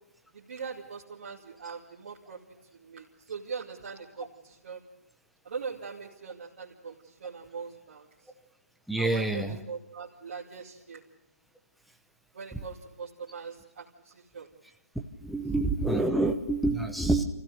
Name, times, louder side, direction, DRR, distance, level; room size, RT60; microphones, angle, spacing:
voice 1, 0.3-2.4 2.7-4.8 5.4-8.1 9.0-11.0 12.3-14.5, right 5 dB, 50° right, -4 dB, 2.5 m, -41 dB
voice 2, 8.9-9.6 15.2-17.2, right 2 dB, ahead, 4 dB, 0.9 m, -27 dB
25.0 x 16.0 x 6.6 m, 0.96 s
hypercardioid pair, 155°, 8 cm